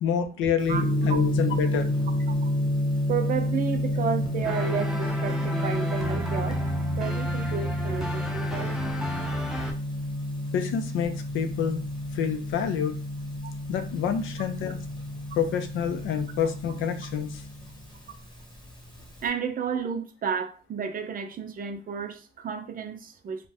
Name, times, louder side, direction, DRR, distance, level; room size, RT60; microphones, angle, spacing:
voice 1, 0.0-1.9 10.5-11.8 12.1-12.9 13.7-14.8 15.4-17.4, left 7 dB, 85° left, 9 dB, 0.5 m, -28 dB
Gong, 0.6-19.3, left 1 dB, 20° left, 1.0 m, -30 dB
voice 2, 3.1-6.6 7.0-8.9 13.4-13.5 19.2-23.5, right 6 dB, 45° right, 7 dB, 0.5 m, -32 dB
sound 1, 4.4-9.7, right 1 dB, 5° right, 0.5 m, -33 dB
2.5 x 2.2 x 3.3 m, 0.36 s
cardioid pair, 90°, 20 cm